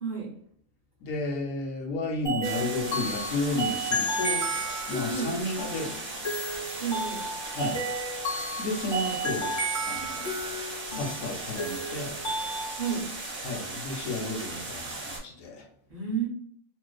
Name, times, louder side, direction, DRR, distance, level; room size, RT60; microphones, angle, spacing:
voice 1, 0.0-0.4 5.1-5.4 6.8-7.3 12.8-13.1 15.9-16.3, right 6 dB, 45° right, -5 dB, 0.8 m, -31 dB
voice 2, 1.0-4.4 4.9-6.0 7.5-7.8 8.6-9.6 9.9-10.3 10.9-12.2 13.4-15.6, left 2 dB, 80° left, 0 dB, 1.0 m, -32 dB
sound 1, 2.2-12.9, right 1 dB, 30° left, 0.5 m, -32 dB
sound 2, 2.4-15.2, right 2 dB, 70° right, 1.3 m, -38 dB
2.5 x 2.3 x 2.2 m, 0.66 s
omnidirectional pair, 1.4 m